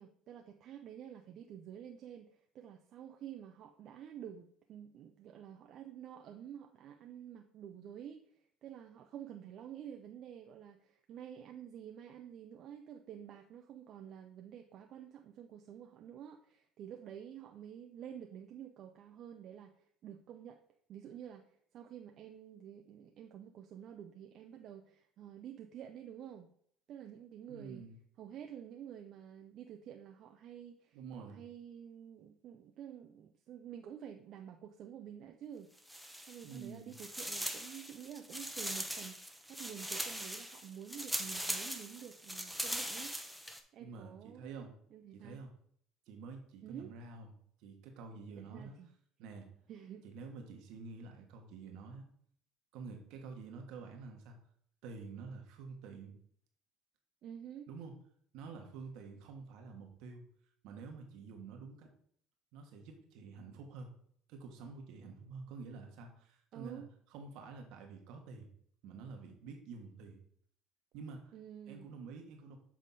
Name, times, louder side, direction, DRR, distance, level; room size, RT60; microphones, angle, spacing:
voice 1, 0.0-20.6 20.9-26.5 26.9-27.8 28.2-35.7 36.3-43.1 43.7-45.4 46.6-46.9 48.3-48.9 49.7-50.1 57.2-57.7 66.5-66.9 71.3-71.9, right 9 dB, 60° right, 4 dB, 0.5 m, -50 dB
voice 2, 27.5-28.0 30.9-31.4 36.4-36.9 43.8-44.7 45.1-45.5 46.1-47.3 47.6-48.8 49.2-49.5 50.0-52.1 52.7-54.4 54.8-56.2 57.7-57.9 58.3-60.2 60.6-61.9 62.5-63.9 64.3-66.8 67.1-68.5 68.8-70.2 70.9-71.3 71.7-72.6, right 4 dB, 75° right, 3 dB, 1.3 m, -48 dB
sound 1, 35.8-36.6 36.9-43.6, equal, ahead, 0.8 m, -41 dB
7.4 x 3.5 x 4.0 m, 0.62 s
supercardioid pair, 85°, 0 cm